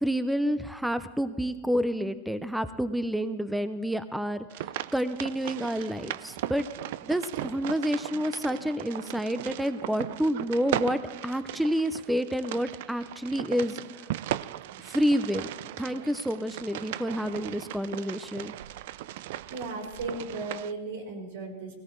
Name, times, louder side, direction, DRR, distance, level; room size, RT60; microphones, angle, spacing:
voice 1, 0.0-6.7 7.0-13.8 14.8-15.5 15.8-18.5, equal, ahead, 12 dB, 0.5 m, -29 dB
sound 1, 4.5-20.7, right 14 dB, 65° right, 0.3 m, -37 dB
voice 2, 19.5-21.7, right 3 dB, 85° right, 1 dB, 3.9 m, -36 dB
18.0 x 17.5 x 3.1 m, 1.2 s
supercardioid pair, 130°, 0 cm